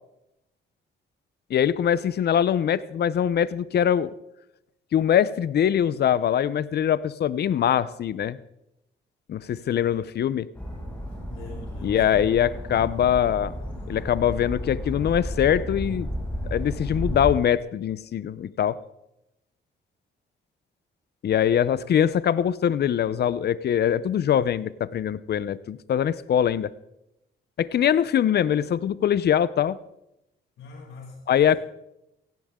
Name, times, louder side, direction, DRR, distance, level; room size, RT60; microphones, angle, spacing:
voice 1, 1.5-4.1 4.9-8.4 9.3-10.5 11.8-13.5 13.9-16.1 16.5-18.8 21.2-26.7 27.6-29.8 31.3-31.6, left 9 dB, 55° left, 17 dB, 0.7 m, -23 dB
voice 2, 9.6-10.1 11.3-12.3 30.6-31.2, left 4 dB, 85° left, -1 dB, 6.4 m, -44 dB
sound 1, 10.5-17.3, equal, 5° left, 6.8 m, -33 dB
17.0 x 16.0 x 3.7 m, 0.88 s
cardioid pair, 90°, 20 cm